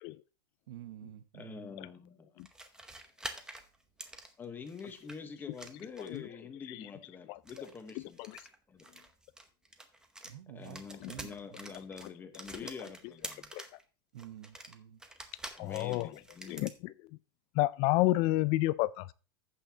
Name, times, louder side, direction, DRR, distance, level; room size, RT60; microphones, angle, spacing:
voice 1, 0.7-1.6 10.2-10.8 11.1-11.3 14.1-15.0, right 12 dB, 80° right, 0.9 m, -48 dB
voice 2, 1.3-2.3 4.4-8.2 8.7-8.9 10.5-13.5 15.5-16.8, left 5 dB, 15° left, 1.1 m, -46 dB
sound 1, 2.4-5.2 5.5-6.3 7.4-10.4 10.6-13.8 14.2-16.8, right 2 dB, 5° right, 0.8 m, -48 dB
voice 3, 7.3-7.7 7.9-8.4 11.0-11.1 12.5-12.7 13.5-13.6 15.6-16.1 16.5-16.9 17.6-19.1, left 18 dB, 40° left, 0.4 m, -30 dB
15.0 x 5.6 x 2.8 m
supercardioid pair, 155°, 13 cm